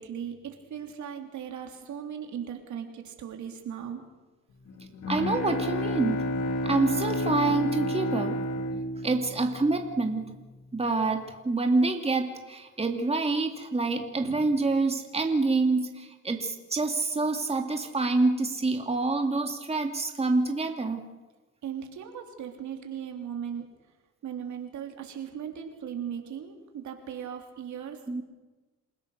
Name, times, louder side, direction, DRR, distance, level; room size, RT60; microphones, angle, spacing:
voice 1, 0.0-4.0 21.6-23.7 24.2-28.0, right 8 dB, 70° right, 3 dB, 3.5 m, -38 dB
Bowed string instrument, 4.7-10.2, left 1 dB, 60° left, 2.5 m, -30 dB
voice 2, 5.1-6.2 6.6-8.4 9.0-10.3 10.7-21.1 28.1-28.2, right 3 dB, 20° right, 4 dB, 2.4 m, -27 dB
27.5 x 16.5 x 6.7 m, 1.2 s
cardioid pair, 90°, 30 cm